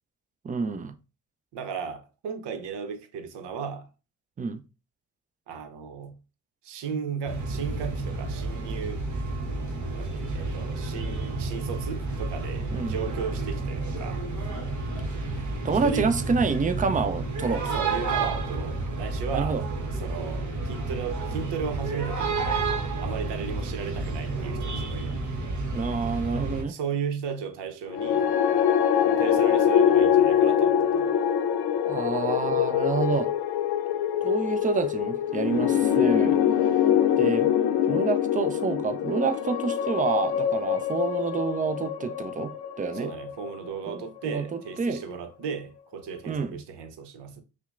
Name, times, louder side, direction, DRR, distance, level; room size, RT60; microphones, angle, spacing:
voice 1, 0.4-1.0 4.4-4.6 12.7-13.0 15.6-17.7 19.3-19.6 25.7-26.8 31.8-33.3 34.2-36.4 37.2-37.5 37.9-43.1 43.9-45.0 46.3-46.6, right 5 dB, 20° right, 0.4 m, -28 dB
voice 2, 1.5-3.9 5.5-6.2 6.6-9.1 9.9-14.2 15.8-16.1 17.6-19.6 20.0-22.5 23.0-25.2 26.7-28.3 29.0-31.1 42.9-47.4, right 6 dB, 60° right, 0.9 m, -35 dB
sound 1, 7.3-26.6, right 3 dB, 40° right, 1.2 m, -31 dB
sound 2, 27.9-44.2, left 9 dB, 55° left, 0.6 m, -24 dB
5.6 x 2.2 x 2.5 m
hypercardioid pair, 50°, 47 cm